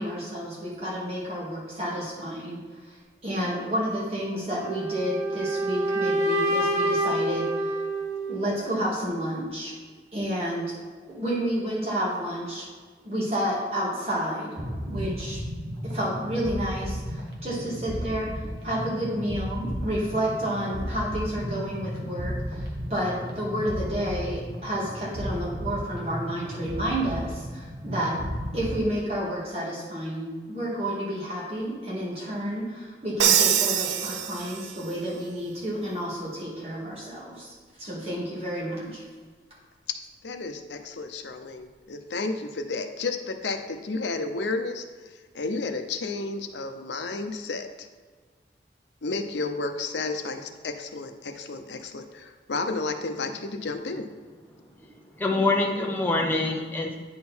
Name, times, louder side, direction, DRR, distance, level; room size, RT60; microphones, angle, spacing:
voice 1, 0.0-2.6 3.2-7.8 8.3-9.8 10.1-10.7 11.1-12.7 13.0-14.5 14.8-15.4 15.8-18.3 18.6-28.2 28.5-39.0, equal, 35° right, -5 dB, 2.1 m, -30 dB
sound 1, 4.5-8.6, right 1 dB, 15° right, 1.0 m, -27 dB
sound 2, 14.6-28.8, equal, 65° right, 1.3 m, -34 dB
Crash cymbal, 33.2-34.9, right 9 dB, 85° right, 0.5 m, -24 dB
voice 2, 40.2-44.8 45.3-47.9 49.0-54.1, left 3 dB, 85° left, 6 dB, 0.7 m, -32 dB
voice 3, 55.2-57.0, left 2 dB, 10° left, 0 dB, 0.7 m, -25 dB
9.5 x 3.8 x 4.4 m, 1.5 s
head